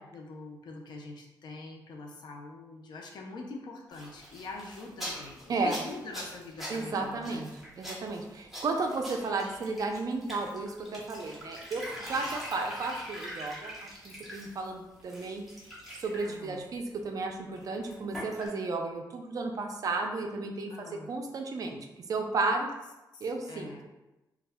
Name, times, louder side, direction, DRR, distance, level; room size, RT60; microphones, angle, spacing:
voice 1, 0.1-7.4 16.2-16.7 20.7-21.1 23.1-23.9, left 3 dB, 70° left, 1 dB, 0.4 m, -44 dB
sound 1, 3.9-14.7 15.0-16.3 17.6-18.5, equal, ahead, 0.8 m, -43 dB
voice 2, 6.7-7.5 7.8-15.4 16.0-21.8 22.1-22.7 23.2-23.7, right 3 dB, 50° right, 3 dB, 0.4 m, -33 dB
2.3 x 2.1 x 3.4 m, 0.99 s
wide cardioid pair, 135°, 8 cm